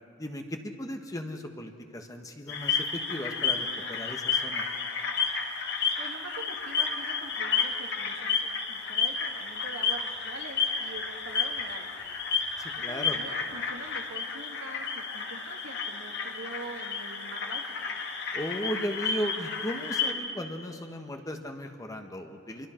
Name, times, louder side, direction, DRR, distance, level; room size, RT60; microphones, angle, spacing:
voice 1, 0.2-4.7 12.6-13.2 18.3-22.7, equal, 20° left, 4 dB, 1.4 m, -36 dB
sound 1, 2.5-20.1, left 5 dB, 60° left, 2.0 m, -31 dB
voice 2, 6.0-11.9 12.7-17.6, right 3 dB, 80° right, 3 dB, 2.0 m, -44 dB
27.0 x 23.5 x 4.5 m, 2.8 s
head